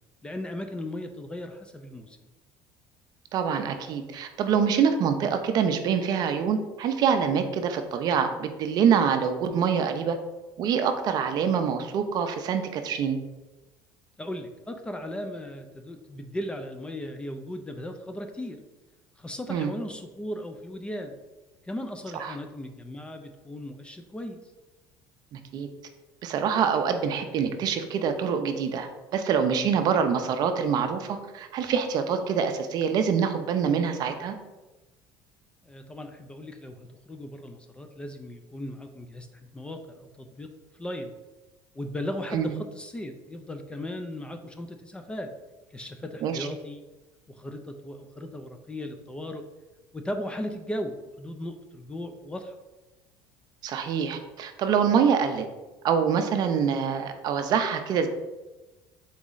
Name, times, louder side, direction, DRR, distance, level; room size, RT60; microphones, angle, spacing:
voice 1, 0.2-2.2 14.2-18.6 19.2-21.1 21.6-24.4 35.6-40.5 40.8-41.1 41.8-45.3 45.7-46.8 47.3-49.4 49.9-52.5, left 1 dB, 10° left, 6 dB, 0.3 m, -37 dB
voice 2, 3.3-10.2 10.6-13.2 19.5-19.7 22.1-22.4 25.3-25.7 26.2-34.3 42.3-42.5 46.2-46.5 53.6-55.4 55.8-58.1, right 7 dB, 50° right, 7 dB, 0.5 m, -25 dB
4.0 x 3.0 x 3.8 m, 1.1 s
cardioid pair, 125°, 9 cm